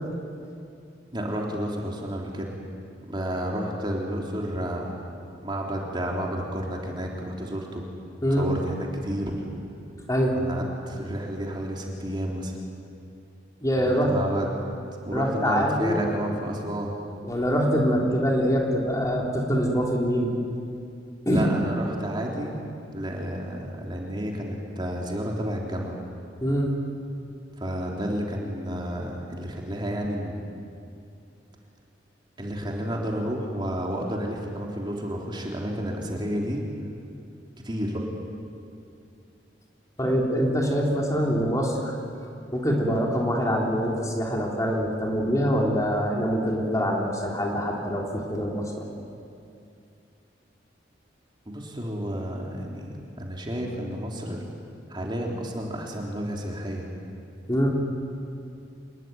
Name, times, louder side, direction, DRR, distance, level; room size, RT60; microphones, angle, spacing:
voice 1, 1.1-2.5 3.1-5.1 5.4-7.9 8.3-9.5 10.3-12.6 13.8-14.5 15.0-16.9 21.3-22.6 22.9-26.0 27.6-30.5 32.4-36.6 37.6-38.0 51.5-54.5 54.9-56.9, equal, 25° right, -1 dB, 3.6 m, -31 dB
voice 2, 13.6-14.1 15.1-16.1 17.2-20.3 21.3-21.5 26.4-26.7 40.0-41.9 42.5-48.9 57.5-57.7, equal, 20° left, -1 dB, 3.6 m, -24 dB
27.5 x 21.5 x 9.5 m, 2.5 s
head